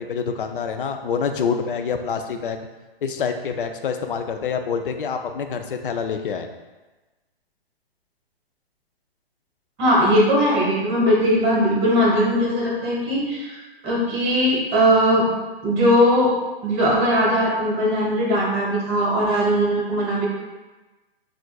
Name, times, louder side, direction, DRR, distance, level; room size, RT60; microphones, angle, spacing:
voice 1, 0.0-2.6 3.0-6.5, left 6 dB, 60° left, 6 dB, 0.5 m, -26 dB
voice 2, 9.8-15.3 15.6-16.3 16.6-20.3, equal, 20° right, -5 dB, 1.2 m, -19 dB
5.9 x 2.5 x 2.3 m, 1.2 s
figure-of-eight pair, 130°, 31 cm